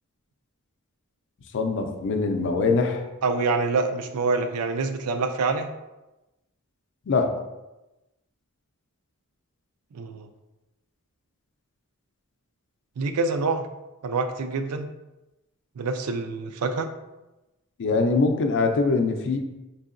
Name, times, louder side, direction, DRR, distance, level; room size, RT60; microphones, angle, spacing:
voice 1, 1.5-3.0 7.1-7.3 17.8-19.4, left 3 dB, 55° left, 5 dB, 0.4 m, -23 dB
voice 2, 3.2-5.7 9.9-10.3 13.0-13.7 14.0-14.9 15.8-16.9, right 4 dB, 75° right, 7 dB, 0.4 m, -26 dB
4.7 x 2.7 x 2.5 m, 1.0 s
head